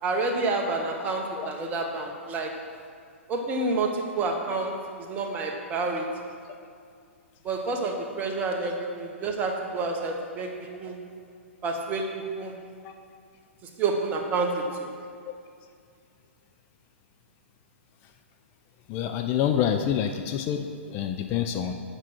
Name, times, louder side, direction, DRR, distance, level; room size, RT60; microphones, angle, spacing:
voice 1, 0.0-2.5 3.3-4.7 5.0-6.0 7.4-10.5 10.8-11.0 11.6-12.0 12.3-12.5 13.8-14.9, right 3 dB, 20° right, 2 dB, 1.1 m, -28 dB
voice 2, 18.9-21.7, left 9 dB, 30° left, 6 dB, 0.4 m, -27 dB
8.0 x 6.1 x 6.0 m, 2.3 s
figure-of-eight pair, 115°, 7 cm